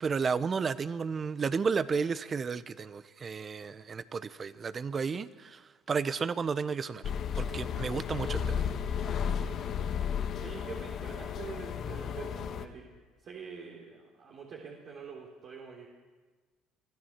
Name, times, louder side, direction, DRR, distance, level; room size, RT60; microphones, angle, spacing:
voice 1, 0.0-5.6 5.9-7.0 7.4-8.6, right 5 dB, 40° right, 15 dB, 0.9 m, -32 dB
sound 1, 7.0-12.6, left 7 dB, 55° left, 1.4 m, -33 dB
voice 2, 9.2-10.1 10.4-12.8 13.2-15.9, right 5 dB, 60° right, -2 dB, 3.6 m, -46 dB
24.5 x 14.0 x 7.4 m, 1.3 s
supercardioid pair, 75°, 0 cm